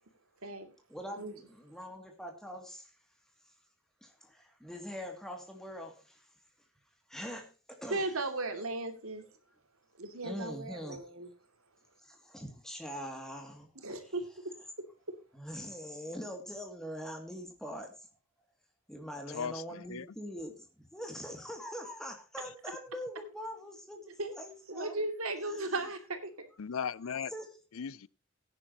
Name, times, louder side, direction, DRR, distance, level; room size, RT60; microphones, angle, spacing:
voice 1, 0.9-2.9 4.0-6.3 7.1-8.2 10.2-11.1 12.0-14.2 15.3-18.1 18.9-25.0 25.4-25.9 27.3-27.6, equal, ahead, 2.5 m, -43 dB
voice 2, 7.9-9.2 10.0-11.3 13.8-14.2 24.2-24.3 24.7-26.5, right 2 dB, 85° right, 2.6 m, -36 dB
voice 3, 19.3-20.1 26.6-27.3 27.8-28.1, left 7 dB, 75° left, 0.5 m, -37 dB
17.5 x 10.0 x 3.0 m
head